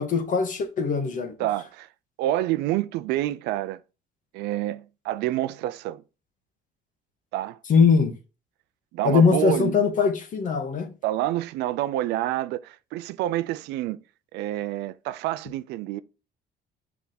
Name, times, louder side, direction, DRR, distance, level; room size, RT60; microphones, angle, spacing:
voice 1, 0.0-1.3 7.7-8.1 9.0-10.9, left 5 dB, 50° left, 1.6 m, -21 dB
voice 2, 1.4-1.9 2.2-3.8 4.3-6.0 7.3-7.6 8.9-9.7 11.0-14.0 14.3-16.0, right 14 dB, 90° right, 0.6 m, -28 dB
5.9 x 5.0 x 4.0 m
cardioid pair, 110°, 17 cm